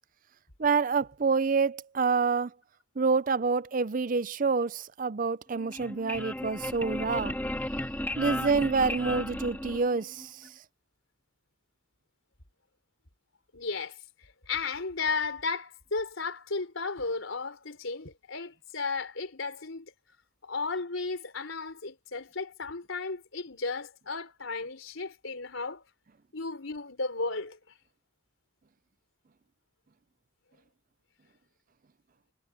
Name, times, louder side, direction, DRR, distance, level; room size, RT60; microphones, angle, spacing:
voice 1, 0.6-2.5 3.0-7.3 8.2-10.5, right 4 dB, 45° right, 0.5 m, -27 dB
sound 1, 5.5-10.3, left 1 dB, 10° left, 2.0 m, -34 dB
voice 2, 13.5-19.9 20.4-25.8 26.3-27.6, left 4 dB, 90° left, 3.7 m, -34 dB
head